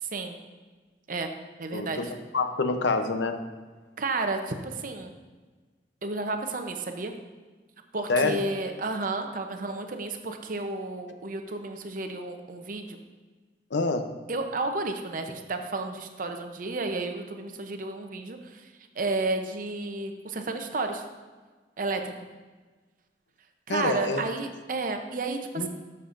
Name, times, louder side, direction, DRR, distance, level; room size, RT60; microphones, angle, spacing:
voice 1, 0.0-0.4 1.1-1.3 1.6-2.1 4.0-5.1 6.0-7.1 7.9-13.0 14.3-21.1 21.8-22.1 23.7-25.7, right 3 dB, 50° right, 5 dB, 0.7 m, -32 dB
voice 2, 1.7-3.4 8.1-8.4 13.7-14.0 23.7-24.2 25.6-25.7, left 3 dB, 90° left, 7 dB, 0.7 m, -26 dB
12.5 x 6.6 x 2.5 m, 1.3 s
head